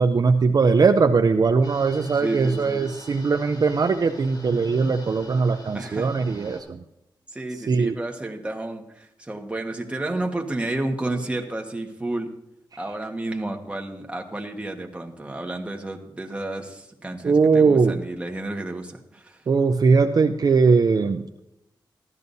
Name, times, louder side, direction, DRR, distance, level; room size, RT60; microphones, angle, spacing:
voice 1, 0.0-6.8 7.7-8.0 17.2-18.0 19.5-21.4, right 4 dB, 50° right, 7 dB, 0.5 m, -20 dB
sound 1, 1.6-6.6, left 1 dB, 55° left, 3.1 m, -45 dB
voice 2, 2.2-2.9 5.7-6.1 7.3-12.3 12.8-19.4, right 2 dB, 15° right, 2 dB, 1.4 m, -31 dB
15.0 x 12.0 x 2.7 m, 0.86 s
wide cardioid pair, 105°, 8 cm